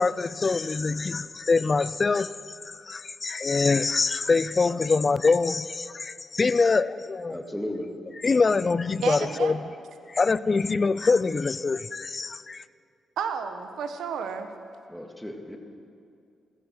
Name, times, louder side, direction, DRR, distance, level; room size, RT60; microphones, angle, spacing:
voice 1, 0.0-2.3 2.7-7.4 8.2-9.6 10.1-12.6, left 4 dB, 40° left, 17 dB, 0.5 m, -24 dB
voice 2, 7.3-7.9 14.9-15.6, left 1 dB, 5° left, 2 dB, 2.2 m, -34 dB
voice 3, 9.0-9.6 13.2-14.5, right 6 dB, 80° right, 7 dB, 1.1 m, -31 dB
15.0 x 14.5 x 6.2 m, 2.4 s
cardioid pair, 65°, 0 cm